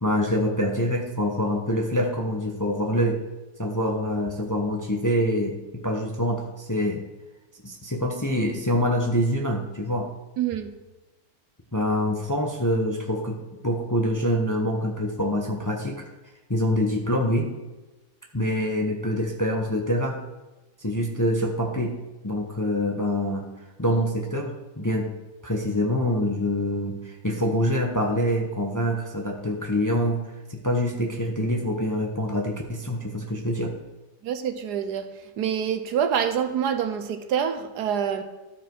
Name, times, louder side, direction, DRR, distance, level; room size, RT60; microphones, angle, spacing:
voice 1, 0.0-3.2 3.6-7.0 7.6-10.1 11.7-16.0 16.5-17.5 18.3-20.2 20.8-22.0 22.2-23.5 23.8-25.1 25.4-33.7, equal, 15° left, 1 dB, 0.7 m, -25 dB
voice 2, 10.4-10.7 34.2-35.1 35.4-38.2, right 8 dB, 80° right, 8 dB, 1.3 m, -26 dB
13.5 x 5.0 x 4.6 m, 1.1 s
omnidirectional pair, 1.7 m